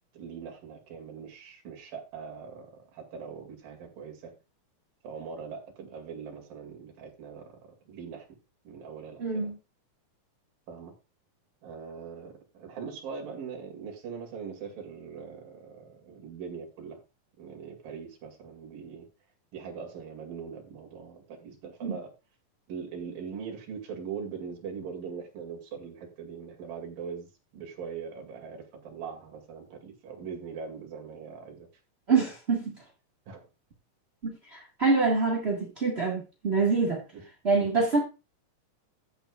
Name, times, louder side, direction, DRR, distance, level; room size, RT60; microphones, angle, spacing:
voice 1, 0.1-4.3 5.0-7.6 7.9-8.3 8.7-9.5 10.7-10.9 11.6-17.0 17.4-19.1 19.5-22.1 22.7-27.3 27.5-31.7 32.1-32.3 33.3-33.4 37.1-37.2, right 6 dB, 85° right, 4.1 m, -41 dB
voice 2, 9.2-9.6 21.8-22.0 32.1-32.7 34.2-37.0 37.4-38.0, right 4 dB, 30° right, 1.2 m, -26 dB
15.0 x 7.9 x 2.4 m
omnidirectional pair, 3.9 m